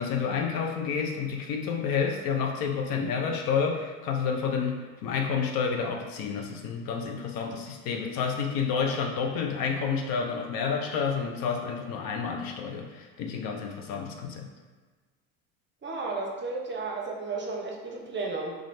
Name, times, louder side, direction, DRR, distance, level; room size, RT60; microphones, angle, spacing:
voice 1, 0.0-14.5, left 6 dB, 55° left, 2 dB, 0.6 m, -29 dB
voice 2, 15.8-18.5, right 3 dB, 25° right, 0 dB, 0.7 m, -33 dB
3.8 x 2.5 x 3.1 m, 1.4 s
hypercardioid pair, 80°, 42 cm